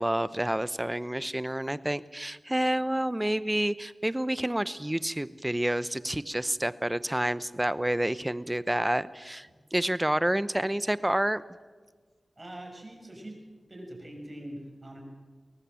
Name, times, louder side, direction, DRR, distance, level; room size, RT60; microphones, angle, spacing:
voice 1, 0.0-11.4, right 1 dB, 15° right, 16 dB, 0.8 m, -29 dB
voice 2, 12.4-13.4 13.7-15.0, right 1 dB, 35° right, 1 dB, 6.3 m, -43 dB
22.0 x 18.5 x 7.6 m, 1.4 s
wide cardioid pair, 55°, 0 cm